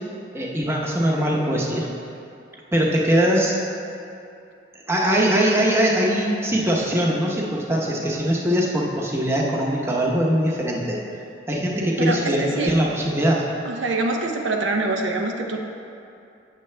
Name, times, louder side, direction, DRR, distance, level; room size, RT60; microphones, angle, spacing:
voice 1, 0.3-1.9 2.7-3.6 4.9-11.0 11.5-13.4, equal, 15° right, -3 dB, 0.8 m, -21 dB
voice 2, 12.0-12.8 13.6-15.6, right 2 dB, 85° right, 2 dB, 0.7 m, -25 dB
8.9 x 6.7 x 3.3 m, 2.6 s
head